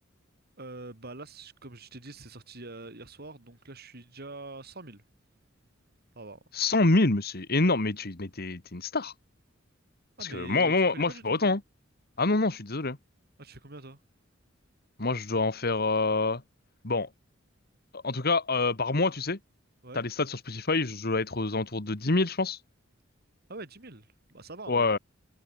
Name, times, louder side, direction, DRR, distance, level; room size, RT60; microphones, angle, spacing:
voice 1, 0.6-5.0 6.2-6.4 10.2-11.4 13.4-14.0 19.8-20.1 23.5-24.9, right 2 dB, 55° right, 3.5 m, -44 dB
voice 2, 6.5-9.1 10.2-11.6 12.2-13.0 15.0-16.4 16.8-17.1 18.0-19.4 19.9-22.6 24.7-25.0, left 3 dB, 50° left, 1.8 m, -26 dB
head